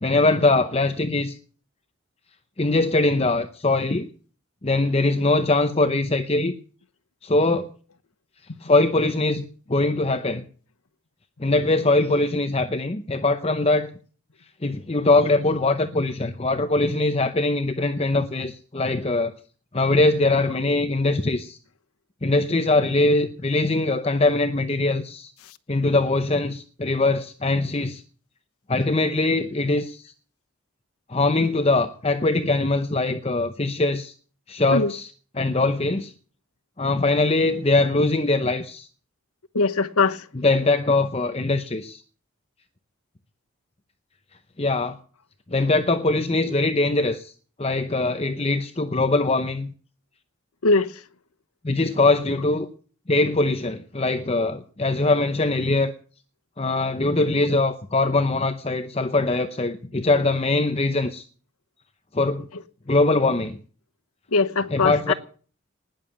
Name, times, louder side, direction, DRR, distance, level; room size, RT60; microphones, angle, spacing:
voice 1, 0.0-1.3 2.6-4.1 4.6-6.5 7.2-7.7 8.6-10.4 11.4-13.9 14.6-19.3 19.7-21.6 22.2-25.3 25.7-28.0 28.7-30.1 31.1-34.1 34.5-36.1 36.8-38.9 40.3-42.0 44.6-45.0 45.5-47.3 47.6-49.7 51.6-52.7 53.1-55.9 56.6-61.2 62.1-62.5 62.9-63.6 64.7-65.1, left 2 dB, 25° left, 0.7 m, -22 dB
voice 2, 39.5-40.2 50.6-50.9 64.3-65.1, left 3 dB, 90° left, 1.1 m, -21 dB
19.5 x 7.1 x 9.1 m
head